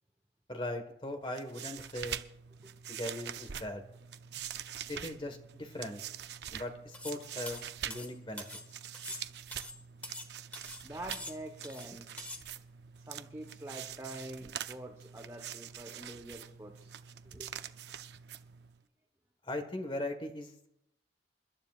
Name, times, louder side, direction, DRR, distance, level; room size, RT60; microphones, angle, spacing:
voice 1, 0.5-2.2 2.9-3.8 4.9-6.0 6.5-8.4 19.5-20.7, left 1 dB, 30° left, 6 dB, 1.5 m, -39 dB
sound 1, 1.2-18.8, right 9 dB, 70° right, 0.5 m, -45 dB
sound 2, 6.9-7.2 7.5-8.7 8.9-10.3 10.5-10.8 11.1-11.9 12.2-12.4, left 1 dB, 10° left, 1.0 m, -44 dB
voice 2, 10.8-12.2 13.1-16.9 17.2-17.5, right 1 dB, 15° right, 2 dB, 1.2 m, -45 dB
28.5 x 12.0 x 2.5 m, 0.79 s
head